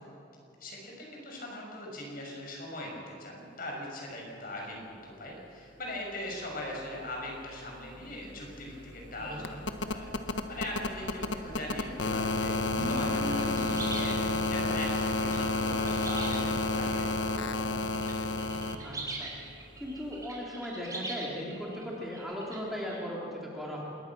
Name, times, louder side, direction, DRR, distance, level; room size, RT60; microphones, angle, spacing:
voice 1, 0.6-9.6 9.9-10.1 10.5-14.1 14.5-17.5, left 1 dB, 50° left, -1 dB, 6.7 m, -40 dB
sound 1, 7.5-7.6 7.8-18.8 20.2-20.3, left 3 dB, 75° left, 1.3 m, -31 dB
voice 2, 9.2-9.5 18.8-19.3 19.8-23.8, equal, ahead, -4 dB, 3.3 m, -38 dB
sound 2, 11.9-18.7, equal, 60° right, 3.8 m, -42 dB
sound 3, 13.2-16.8 17.4-18.1 18.4-23.0, right 2 dB, 20° right, 4.5 m, -42 dB
27.0 x 21.5 x 6.2 m, 2.8 s
head